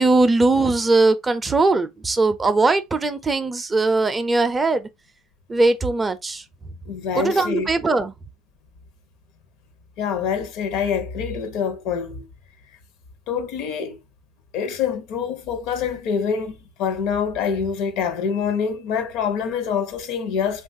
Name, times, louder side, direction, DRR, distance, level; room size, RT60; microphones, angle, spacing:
voice 1, 0.0-4.9 5.5-6.4 7.2-8.1, right 3 dB, 20° right, 0.4 m, -20 dB
voice 2, 6.9-7.7 10.0-12.3 13.3-14.0 14.5-20.6, left 6 dB, 70° left, 0.7 m, -25 dB
3.1 x 2.3 x 2.6 m
supercardioid pair, 100°, 0 cm